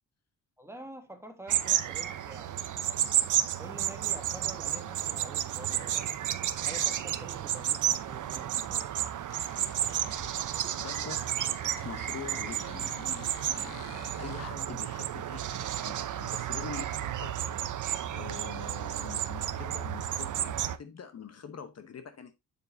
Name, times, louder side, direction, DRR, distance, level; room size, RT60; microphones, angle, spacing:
voice 1, 0.6-2.9 3.5-6.2 6.6-8.9, right 1 dB, 5° right, 1.3 m, -47 dB
sound 1, 1.5-20.8, right 11 dB, 60° right, 0.7 m, -32 dB
sound 2, 9.3-14.5, left 8 dB, 65° left, 1.2 m, -51 dB
voice 2, 10.8-22.4, left 7 dB, 45° left, 0.9 m, -45 dB
7.5 x 7.0 x 2.6 m
cardioid pair, 125°, 35 cm